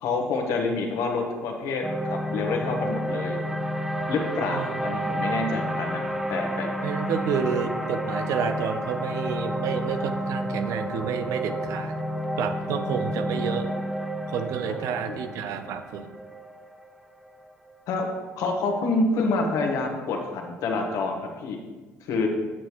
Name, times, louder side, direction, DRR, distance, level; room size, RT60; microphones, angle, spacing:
voice 1, 0.0-3.4 4.1-6.0 6.3-6.7 14.7-14.8 15.1-15.2 17.9-18.1 18.4-21.6 22.0-22.3, left 3 dB, 75° left, 2 dB, 1.2 m, -27 dB
sound 1, 1.8-18.1, equal, 5° right, 0.7 m, -30 dB
voice 2, 6.8-12.0 12.4-13.7 14.3-16.1, right 7 dB, 75° right, 9 dB, 0.6 m, -29 dB
8.7 x 6.5 x 3.1 m, 1.3 s
supercardioid pair, 80°, 6 cm